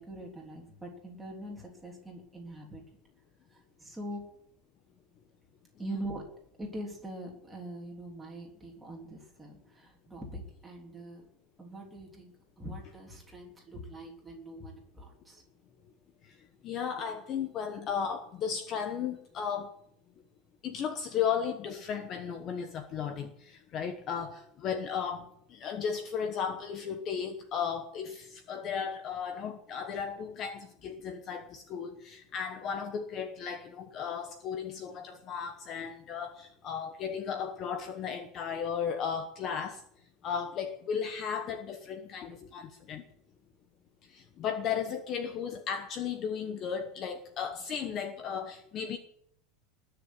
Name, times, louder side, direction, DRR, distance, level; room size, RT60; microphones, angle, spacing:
voice 1, 0.0-2.8 3.5-4.2 5.8-6.2 6.6-11.3 11.6-15.4, right 1 dB, 5° right, 3.4 m, -43 dB
voice 2, 16.6-19.7 20.6-39.8 40.2-43.0 44.0-49.0, left 7 dB, 30° left, 1.1 m, -35 dB
20.0 x 6.8 x 9.4 m
supercardioid pair, 175°, 0 cm